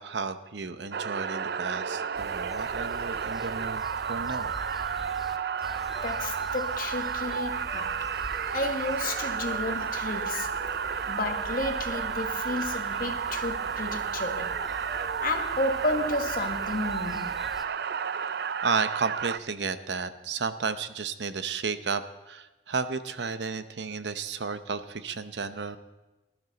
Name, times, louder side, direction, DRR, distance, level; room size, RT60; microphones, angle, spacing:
voice 1, 0.0-3.8 4.1-4.5 18.6-25.8, right 5 dB, 80° right, 0.8 m, -32 dB
sound 1, 0.9-19.4, right 6 dB, 60° right, 0.4 m, -32 dB
sound 2, 2.1-17.6, equal, ahead, 0.8 m, -45 dB
voice 2, 6.0-7.9 8.5-10.5 11.1-14.5 14.9-17.3, left 2 dB, 50° left, 1.4 m, -32 dB
19.5 x 12.5 x 4.0 m
head